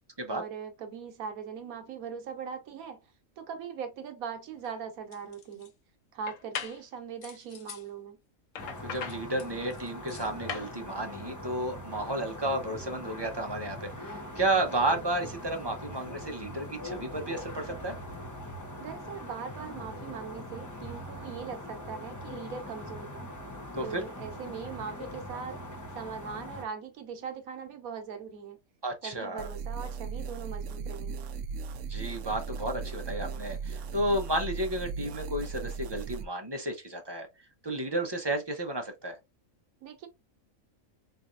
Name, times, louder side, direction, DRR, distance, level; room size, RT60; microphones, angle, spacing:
voice 1, 0.3-3.0 3.4-5.7 6.1-8.2 18.8-23.3 23.8-25.6 25.9-28.6 29.0-31.3 39.8-40.1, right 6 dB, 85° right, 1.2 m, -40 dB
sound 1, 4.6-4.7 5.1-5.7 6.3-6.8 7.2-7.8 8.5-10.7, left 7 dB, 70° left, 1.1 m, -40 dB
sound 2, 8.6-26.6, left 1 dB, 20° left, 0.5 m, -42 dB
voice 2, 8.8-18.0 23.7-24.0 28.8-29.5 31.9-37.3 37.6-39.2, right 1 dB, 30° right, 0.5 m, -32 dB
sound 3, 29.4-36.2, right 5 dB, 70° right, 0.9 m, -37 dB
4.0 x 3.2 x 2.4 m
omnidirectional pair, 1.5 m